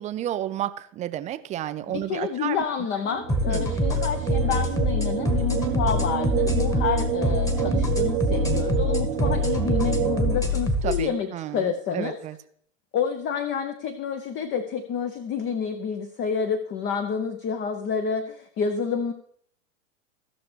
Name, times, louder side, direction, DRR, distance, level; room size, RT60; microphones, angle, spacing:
voice 1, 0.0-2.6 3.5-3.8 10.8-12.4, right 12 dB, 20° right, 12 dB, 0.4 m, -31 dB
voice 2, 1.9-12.2 12.9-19.1, left 6 dB, 30° left, 9 dB, 0.7 m, -29 dB
sound 1, 3.0-10.4, right 11 dB, 50° right, 1.1 m, -28 dB
sound 2, 3.3-11.0, left 2 dB, 10° left, 1.3 m, -25 dB
16.5 x 6.0 x 3.3 m, 0.64 s
hypercardioid pair, 100°, 38 cm